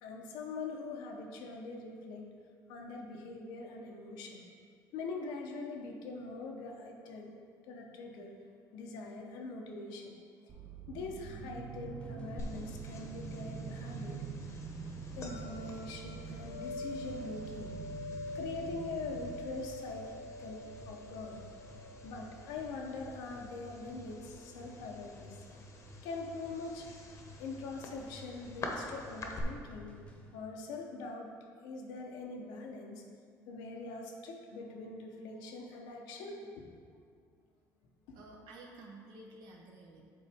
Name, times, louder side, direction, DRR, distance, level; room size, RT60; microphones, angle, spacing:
voice 1, 0.0-2.3 2.7-4.4 4.9-7.3 7.6-8.4 8.7-10.1 10.9-14.2 15.2-17.7 18.3-20.1 20.4-25.4 26.0-29.9 30.3-31.4 31.6-33.0 33.5-36.9 38.1-38.2, left 3 dB, 90° left, 1 dB, 0.8 m, -43 dB
sound 1, 10.5-19.6, right 5 dB, 40° right, 0.6 m, -45 dB
sound 2, 11.8-30.8, equal, 15° left, 0.9 m, -55 dB
sound 3, 12.4-29.4, left 2 dB, 40° left, 0.9 m, -46 dB
voice 2, 38.1-40.0, right 2 dB, 70° right, -1 dB, 0.9 m, -52 dB
7.6 x 3.9 x 3.5 m, 2.1 s
cardioid pair, 115°, 7 cm